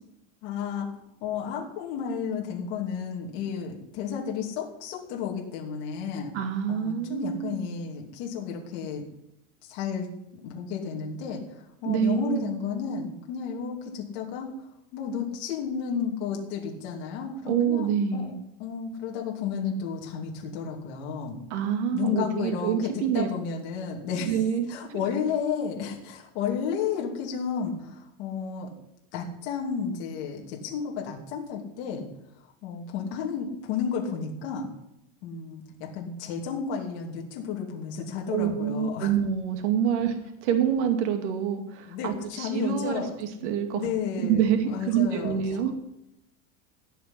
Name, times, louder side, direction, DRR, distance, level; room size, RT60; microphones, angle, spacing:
voice 1, 0.4-0.9 1.2-6.3 6.7-9.0 9.6-14.5 14.9-18.3 18.6-21.4 21.9-24.4 24.7-28.7 29.1-32.0 32.6-34.7 35.2-39.1 41.9-43.1 43.7-45.4, left 6 dB, 50° left, -1 dB, 2.9 m, -32 dB
voice 2, 6.3-7.6 11.8-12.5 17.5-18.3 21.5-23.3 24.3-25.0 38.3-40.2 40.4-43.8 44.2-45.7, right 8 dB, 70° right, 6 dB, 2.2 m, -26 dB
16.0 x 5.9 x 9.9 m, 0.85 s
supercardioid pair, 170°, 35 cm